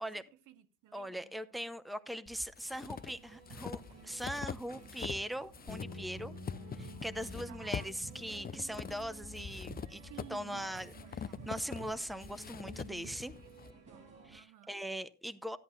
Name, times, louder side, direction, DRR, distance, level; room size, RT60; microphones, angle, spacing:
voice 1, 0.0-1.3 7.4-7.9 10.1-10.8 11.0-11.5 13.2-14.8, right 12 dB, 90° right, 1.0 m, -56 dB
voice 2, 0.9-6.3 6.7-10.0 10.3-10.9 11.2-13.3 14.2-15.6, equal, ahead, 0.8 m, -40 dB
sound 1, 2.3-5.3 5.5-13.7, left 7 dB, 30° left, 0.5 m, -44 dB
sound 2, 2.8-14.4, right 4 dB, 60° right, 6.6 m, -53 dB
sound 3, 5.7-11.9, left 2 dB, 65° left, 1.5 m, -51 dB
13.5 x 10.5 x 2.5 m
cardioid pair, 90°, 30 cm